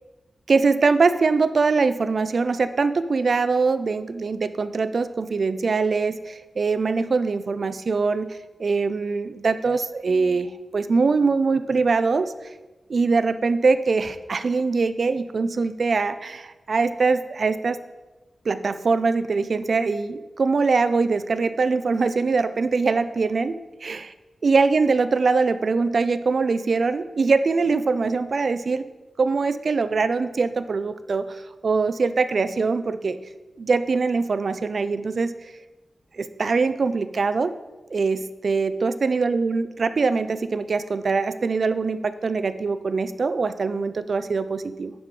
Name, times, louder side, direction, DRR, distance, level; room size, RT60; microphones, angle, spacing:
voice 1, 0.5-12.3 12.9-17.8 18.5-24.1 24.4-28.8 29.2-33.2 33.6-35.4 36.2-37.5 37.9-44.9, right 4 dB, 50° right, 12 dB, 0.4 m, -23 dB
9.7 x 4.7 x 5.2 m, 1.1 s
wide cardioid pair, 155°, 0 cm